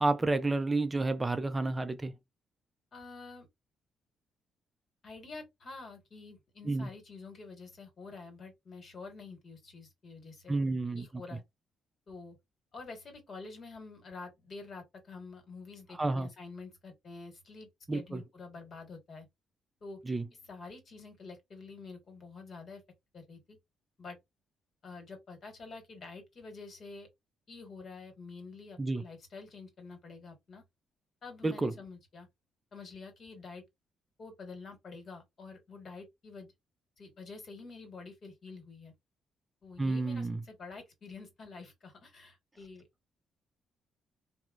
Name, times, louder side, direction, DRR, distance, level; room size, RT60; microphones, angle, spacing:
voice 1, 0.0-2.1 6.7-6.9 10.5-11.1 16.0-16.3 17.9-18.2 20.1-20.2 28.8-29.0 31.4-31.7 39.8-40.4, right 2 dB, 20° right, 0.4 m, -30 dB
voice 2, 2.9-3.5 5.0-10.6 11.0-11.4 12.1-12.3 12.7-19.3 19.8-20.0 20.4-22.8 23.1-23.6 24.0-24.2 24.8-27.1 27.5-30.6 31.2-32.3 32.7-33.6 34.2-36.5 37.0-38.9 39.6-42.8, left 4 dB, 55° left, 1.2 m, -48 dB
2.9 x 2.0 x 2.3 m
supercardioid pair, 70°, 0 cm